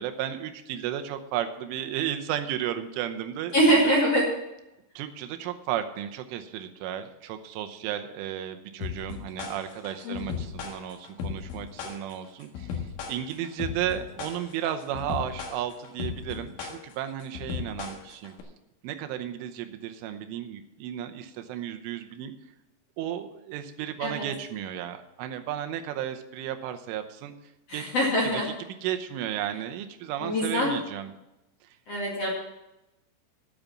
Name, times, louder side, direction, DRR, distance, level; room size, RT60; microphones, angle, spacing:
voice 1, 0.0-3.9 5.0-18.3 18.8-22.3 23.0-27.3 27.7-28.4 28.8-31.1 31.6-31.8, right 10 dB, 90° right, 7 dB, 3.4 m, -34 dB
voice 2, 3.5-4.2 10.0-10.3 24.0-24.3 27.7-28.5 30.2-30.8 31.9-32.3, equal, 45° left, -3 dB, 2.2 m, -24 dB
sound 1, 8.8-18.4, left 7 dB, 80° left, 4.1 m, -36 dB
9.6 x 9.0 x 7.3 m, 0.93 s
omnidirectional pair, 5.5 m